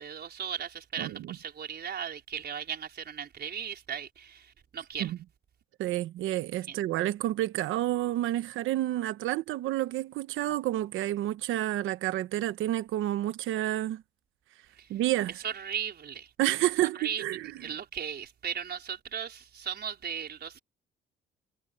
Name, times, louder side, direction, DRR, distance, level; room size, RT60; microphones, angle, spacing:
voice 1, 0.0-5.1 6.7-6.8 14.8-14.9 15.4-16.3 16.9-20.6, right 8 dB, 55° right, 4.8 m, -37 dB
voice 2, 1.0-1.4 5.0-5.2 5.8-14.0 14.9-15.3 16.4-17.5, right 14 dB, 90° right, 1.1 m, -29 dB
cardioid pair, 90°, 20 cm